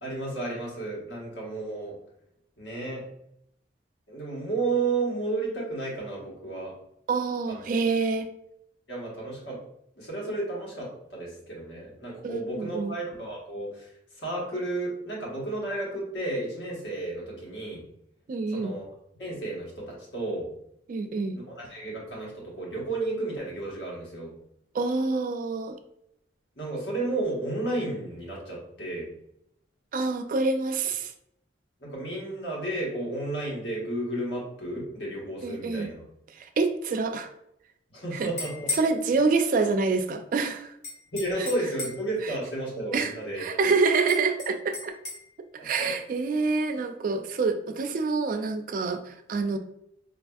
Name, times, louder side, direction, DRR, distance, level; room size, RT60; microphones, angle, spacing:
voice 1, 0.0-2.0 2.6-3.1 4.1-6.7 7.5-7.6 8.9-9.6 10.0-13.9 14.2-17.8 18.5-18.8 19.2-20.5 21.3-24.3 26.6-29.1 31.8-36.0 37.9-38.7 41.1-43.4 45.6-45.9, right 2 dB, 70° left, -3 dB, 1.3 m, -32 dB
voice 2, 7.1-8.3 12.2-12.9 18.3-18.7 20.9-21.4 24.7-25.8 29.9-31.1 35.4-35.9 36.4-37.3 38.1-38.3 38.7-40.7 41.4-41.5 42.2-42.3 42.9-43.1 43.4-44.9 45.6-49.6, right 4 dB, 50° right, 7 dB, 0.3 m, -26 dB
sound 1, 38.2-38.9 40.8-42.1 44.1-45.2, left 3 dB, 40° left, 0.9 m, -35 dB
4.1 x 2.5 x 2.3 m, 0.76 s
head